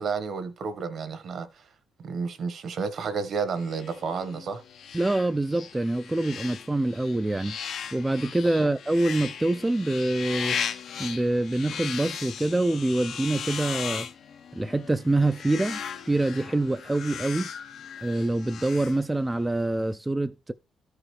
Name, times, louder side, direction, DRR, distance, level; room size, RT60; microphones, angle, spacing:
voice 1, 0.0-1.7 2.0-4.6 8.6-8.7, right 5 dB, 60° right, 1.1 m, -31 dB
sound 1, 3.6-19.5, left 7 dB, 70° left, 0.7 m, -37 dB
voice 2, 4.9-7.6 7.9-10.6 11.0-14.1 14.5-17.5 18.0-20.5, right 2 dB, 15° right, 0.3 m, -25 dB
13.0 x 4.8 x 3.1 m
cardioid pair, 90°, 0 cm